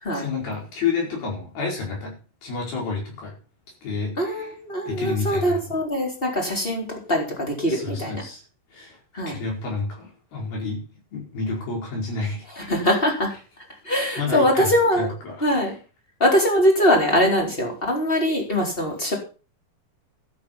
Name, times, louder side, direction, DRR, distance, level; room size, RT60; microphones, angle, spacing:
voice 1, 0.1-3.3 3.8-4.5 4.9-5.8 7.7-8.4 8.7-9.0 9.3-10.9 11.1-12.7 14.2-15.6, left 4 dB, 70° left, 0 dB, 6.8 m, -30 dB
voice 2, 4.2-8.2 9.1-9.4 12.6-13.3 13.8-15.1 15.4-15.7 16.2-19.1, equal, 15° left, 0 dB, 4.0 m, -22 dB
13.0 x 9.1 x 5.9 m, 0.36 s
omnidirectional pair, 4.5 m